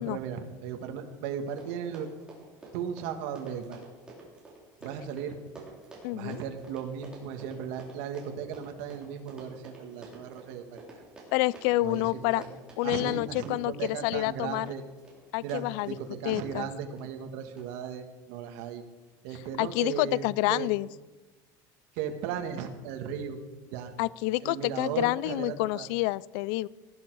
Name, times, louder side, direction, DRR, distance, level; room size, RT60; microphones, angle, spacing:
voice 1, 0.0-2.1 2.7-3.8 4.8-5.4 6.1-10.8 11.8-12.0 12.3-12.5 12.8-14.8 15.4-18.8 19.2-20.7 21.9-23.4 23.7-23.9 24.4-25.9, right 8 dB, 75° right, 5 dB, 1.6 m, -36 dB
Run, 1.1-1.2 1.4-16.4 17.0-17.3 17.6-17.7, right 3 dB, 10° right, 3.7 m, -49 dB
voice 2, 6.0-6.4 11.3-12.4 12.8-14.7 15.3-16.0 16.2-16.7 19.6-20.9 24.0-26.7, left 19 dB, 70° left, 22 dB, 0.4 m, -28 dB
18.5 x 11.5 x 4.7 m, 1.2 s
cardioid pair, 170°, 9 cm